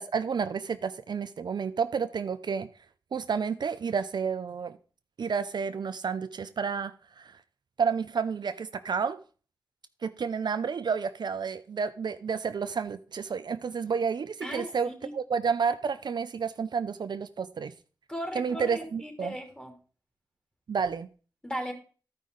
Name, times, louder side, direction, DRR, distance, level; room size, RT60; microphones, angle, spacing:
voice 1, 0.0-2.7 3.1-4.8 5.2-7.4 7.8-9.2 10.0-17.7 18.3-19.4 20.7-21.1, right 6 dB, 60° right, 0.4 m, -30 dB
voice 2, 14.4-15.1 18.1-19.7 21.4-21.7, equal, 10° left, 2.8 m, -37 dB
12.5 x 5.3 x 3.8 m
cardioid pair, 45°, 8 cm